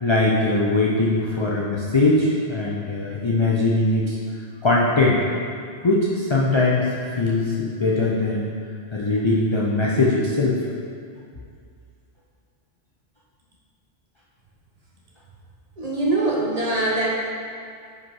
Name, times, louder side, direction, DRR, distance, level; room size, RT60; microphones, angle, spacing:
voice 1, 0.0-4.2 4.6-5.2 5.8-8.5 8.9-10.6, left 2 dB, 40° left, -5 dB, 0.4 m, -21 dB
voice 2, 15.8-17.1, right 2 dB, 35° right, -4 dB, 0.9 m, -22 dB
5.4 x 5.1 x 4.7 m, 2.3 s
omnidirectional pair, 1.3 m